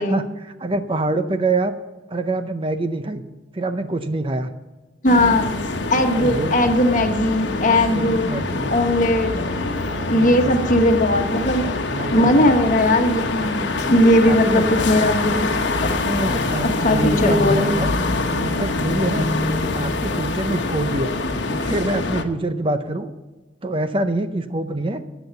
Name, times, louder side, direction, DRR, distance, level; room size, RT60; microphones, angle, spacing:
voice 1, 0.0-1.7 2.1-3.2 3.5-4.5 6.1-6.6 7.9-8.7 10.1-10.5 11.9-12.5 14.2-14.8 16.0-17.9 18.4-19.3 19.6-21.2 21.5-23.1 23.6-25.0, right 2 dB, 30° right, 9 dB, 0.6 m, -25 dB
voice 2, 5.0-5.5 5.9-8.4 8.7-9.4 10.1-11.7 12.1-15.9 16.6-17.7, left 1 dB, 40° left, 5 dB, 1.3 m, -18 dB
sound 1, 5.1-22.2, left 2 dB, 70° left, 1.1 m, -24 dB
13.5 x 8.1 x 7.0 m, 1.2 s
head